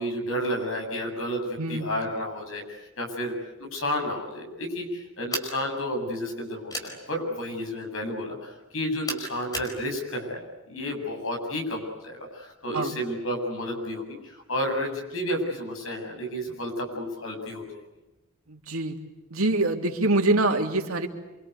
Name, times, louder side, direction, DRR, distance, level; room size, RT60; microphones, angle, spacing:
voice 1, 0.0-3.3 3.7-10.4 10.7-17.7, equal, 70° left, 3 dB, 8.0 m, -31 dB
voice 2, 1.6-1.9 12.7-13.0 18.5-19.0 19.3-21.1, right 2 dB, 90° right, 3 dB, 3.3 m, -25 dB
sound 1, 5.3-5.6 6.7-6.9 9.0-9.7, equal, 15° left, 4.9 m, -32 dB
28.0 x 25.5 x 8.3 m, 1.1 s
head